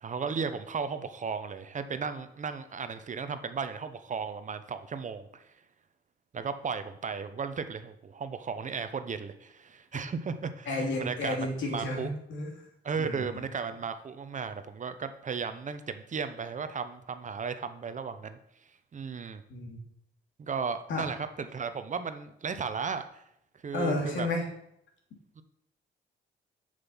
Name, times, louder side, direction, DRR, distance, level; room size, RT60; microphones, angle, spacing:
voice 1, 0.0-5.4 6.3-12.1 12.8-18.4 18.9-19.4 20.4-23.2 23.6-24.3 25.4-25.5, right 5 dB, 40° right, 10 dB, 0.8 m, -35 dB
voice 2, 10.7-12.5 13.0-13.2 19.5-19.8 20.9-21.1 23.7-24.4, left 2 dB, 75° left, 1 dB, 2.6 m, -31 dB
6.8 x 6.7 x 5.6 m, 0.75 s
cardioid pair, 90°, 20 cm